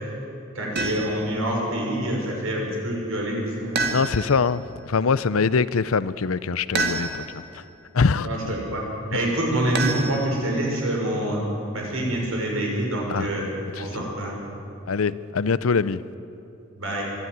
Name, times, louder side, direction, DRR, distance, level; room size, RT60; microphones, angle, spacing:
voice 1, 0.5-3.8 8.2-8.4 8.7-8.8 9.1-11.4 11.7-13.4 13.8-14.3 16.7-17.0, right 1 dB, 75° right, 6.1 m, -26 dB
sound 1, 0.8-1.3 3.8-4.5 6.7-7.5 9.7-10.6, right 3 dB, 50° right, 2.1 m, -28 dB
voice 2, 3.9-7.6 7.9-8.3 13.1-13.3 13.7-13.9 14.9-16.0, left 5 dB, 75° left, 0.6 m, -23 dB
23.5 x 13.5 x 9.5 m
head